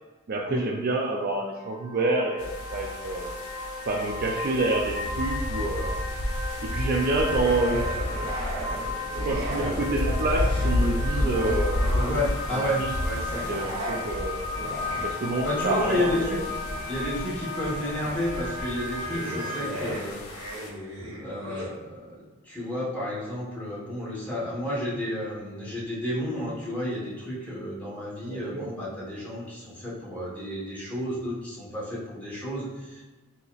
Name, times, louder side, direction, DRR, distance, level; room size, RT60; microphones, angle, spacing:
voice 1, 0.3-3.4 3.9-6.0 6.6-8.0 9.2-11.8 12.5-12.9 13.5-14.5 15.0-16.5 28.2-28.6, right 2 dB, 45° right, 0 dB, 0.4 m, -28 dB
sound 1, 1.5-19.7, left 2 dB, 60° left, 1.0 m, -35 dB
sound 2, 2.4-20.7, left 1 dB, 90° left, 0.5 m, -32 dB
sound 3, 7.2-9.9 10.2-12.6 13.1-21.7, equal, 85° right, 0.9 m, -37 dB
voice 2, 11.9-13.8 15.4-16.4 16.9-20.2 21.2-33.0, left 1 dB, 10° left, -9 dB, 1.2 m, -31 dB
3.9 x 2.8 x 2.4 m, 1.2 s
head